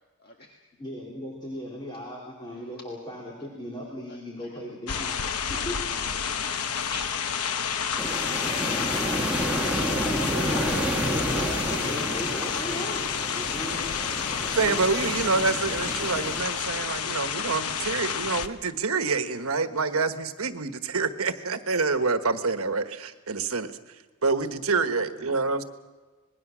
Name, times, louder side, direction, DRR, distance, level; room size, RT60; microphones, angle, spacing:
voice 1, 0.2-0.6 4.1-4.6 5.1-6.6 6.9-8.1, left 3 dB, 45° left, 2 dB, 1.5 m, -46 dB
voice 2, 0.8-5.2 5.5-5.8 8.0-8.2 9.2-13.9 14.6-14.8 25.0-25.4, equal, 20° left, -3 dB, 3.7 m, -38 dB
sound 1, 4.9-18.5, left 7 dB, 85° left, 0.9 m, -30 dB
sound 2, 8.0-16.4, right 1 dB, 5° right, 1.5 m, -31 dB
voice 3, 14.5-23.8 24.2-25.6, right 4 dB, 70° right, 9 dB, 1.3 m, -27 dB
26.0 x 21.0 x 6.2 m, 1.3 s
head